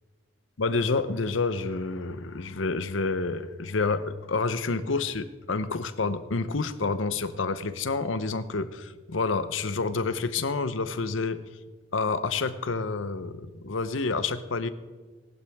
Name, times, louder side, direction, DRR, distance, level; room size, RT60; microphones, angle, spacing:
voice 1, 0.6-11.4 11.9-14.7, left 4 dB, 85° left, 13 dB, 0.8 m, -28 dB
18.5 x 12.0 x 3.5 m, 1.3 s
head